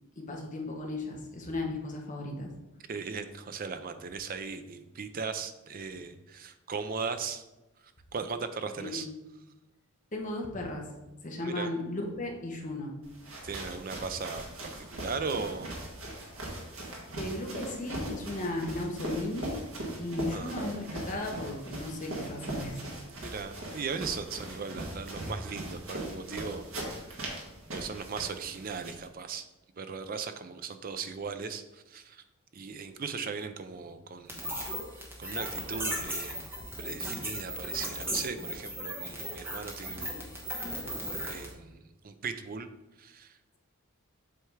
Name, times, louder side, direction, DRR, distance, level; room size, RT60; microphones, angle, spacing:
voice 1, 0.2-2.5 8.8-9.1 10.1-10.9 11.2-12.9 17.1-19.5 20.0-22.8, left 2 dB, 35° left, 0 dB, 1.0 m, -35 dB
voice 2, 2.9-7.4 8.1-9.1 11.4-11.7 13.4-15.7 20.3-20.6 23.2-27.3 27.7-29.4 29.8-32.2 32.5-34.6 35.2-36.5 36.8-40.3 40.6-40.9 41.3-42.7 43.0-43.3, right 5 dB, 40° right, 9 dB, 0.4 m, -38 dB
sound 1, 13.0-29.1, right 1 dB, 65° right, 1.6 m, -40 dB
sound 2, 34.3-41.5, equal, 10° right, 1.1 m, -36 dB
7.7 x 3.4 x 4.7 m, 1.0 s
head